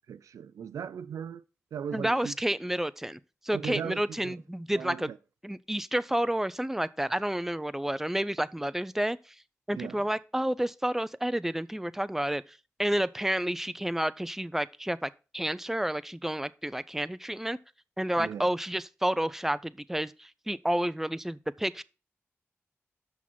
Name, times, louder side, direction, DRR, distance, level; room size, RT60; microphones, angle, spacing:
voice 1, 0.1-1.4 1.7-2.4 3.5-4.4 4.7-5.2 9.7-10.1 18.2-18.4, right 8 dB, 80° right, 0.3 m, -38 dB
voice 2, 1.9-3.2 3.4-5.1 5.4-9.2 9.7-12.4 12.8-17.6 18.0-21.8, right 1 dB, 5° right, 0.5 m, -30 dB
6.1 x 5.8 x 6.0 m
cardioid pair, 40°, 5 cm